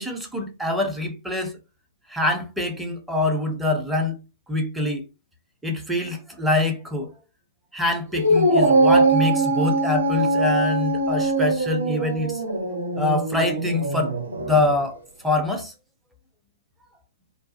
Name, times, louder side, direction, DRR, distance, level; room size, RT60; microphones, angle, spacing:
voice 1, 0.0-1.6 2.1-4.2 4.5-5.0 5.6-7.1 7.7-12.4 13.0-14.2 14.5-15.0 15.2-15.7, left 2 dB, 5° right, 0.6 m, -25 dB
Dog, 8.1-14.8, right 2 dB, 85° right, 0.7 m, -22 dB
2.6 x 2.1 x 2.6 m
hypercardioid pair, 125°, 0 cm